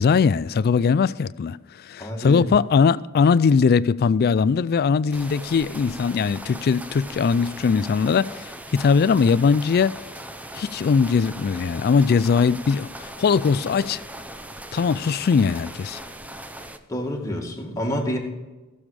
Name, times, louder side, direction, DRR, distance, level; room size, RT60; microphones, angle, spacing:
voice 1, 0.0-10.0 10.5-14.0 14.7-16.0, left 5 dB, 45° left, 0.3 m, -20 dB
voice 2, 2.0-2.5 16.9-18.2, equal, 15° left, 2.0 m, -28 dB
sound 1, 5.1-16.8, right 1 dB, 5° right, 0.6 m, -39 dB
16.0 x 7.1 x 5.0 m
head